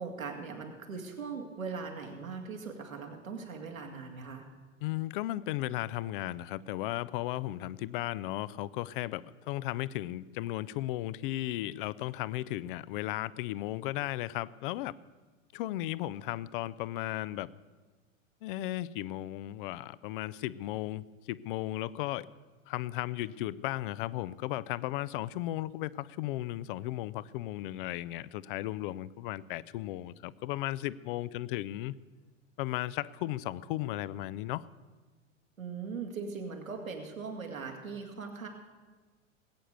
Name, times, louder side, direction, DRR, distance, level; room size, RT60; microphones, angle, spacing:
voice 1, 0.0-4.4 35.6-38.5, right 5 dB, 80° right, 2 dB, 2.4 m, -40 dB
voice 2, 4.8-14.9 15.5-17.5 18.4-22.3 22.7-31.9 32.6-34.7, left 15 dB, 40° left, 19 dB, 0.5 m, -35 dB
19.5 x 8.6 x 6.7 m, 1.4 s
figure-of-eight pair, 90°, 40 cm